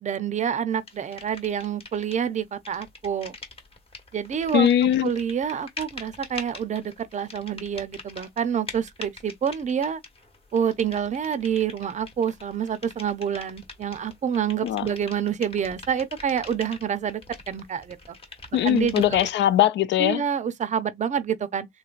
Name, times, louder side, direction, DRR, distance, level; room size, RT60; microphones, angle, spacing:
voice 1, 0.0-3.3 4.1-4.7 5.0-10.0 10.5-17.2 17.5-18.0 18.6-19.2 20.0-21.7, right 8 dB, 40° right, 0.5 m, -27 dB
sound 1, 0.9-2.3 2.5-19.6, left 3 dB, 30° left, 1.1 m, -43 dB
voice 2, 4.5-5.1 14.6-14.9 18.5-20.2, left 11 dB, 65° left, 0.4 m, -21 dB
3.1 x 2.7 x 2.4 m
cardioid pair, 90°, 20 cm